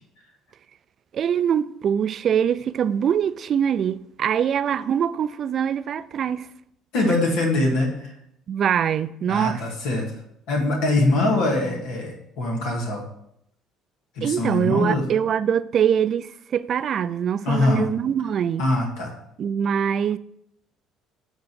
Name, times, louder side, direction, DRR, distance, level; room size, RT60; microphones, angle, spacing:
voice 1, 1.1-6.5 7.0-7.1 8.5-9.6 14.2-18.7 19.4-20.2, right 8 dB, 55° right, 0.4 m, -23 dB
voice 2, 6.9-8.1 9.3-10.1 10.5-13.0 14.2-15.0 17.5-17.9 18.6-19.1, left 2 dB, 80° left, 2.1 m, -23 dB
9.3 x 3.9 x 7.0 m
supercardioid pair, 85°, 0 cm